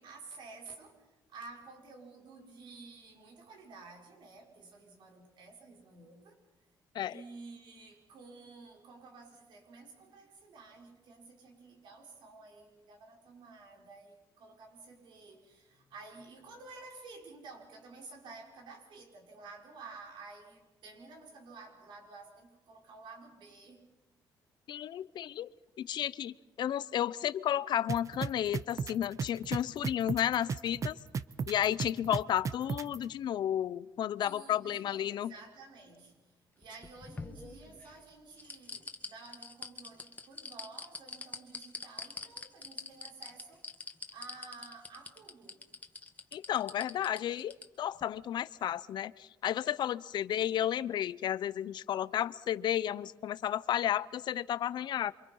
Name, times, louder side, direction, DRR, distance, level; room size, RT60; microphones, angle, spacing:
voice 1, 0.0-6.4 7.1-23.8 34.2-45.6, right 3 dB, 75° right, 1 dB, 5.9 m, -52 dB
voice 2, 24.7-25.5 25.8-31.0 31.5-35.3 46.3-55.1, left 11 dB, 65° left, 17 dB, 0.7 m, -32 dB
sound 1, 27.9-33.0, right 5 dB, 40° right, 0.9 m, -34 dB
sound 2, 36.6-37.9 38.4-47.6 48.0-48.1, left 3 dB, 20° left, 1.9 m, -44 dB
28.0 x 25.0 x 5.6 m, 1.1 s
cardioid pair, 120°, 8 cm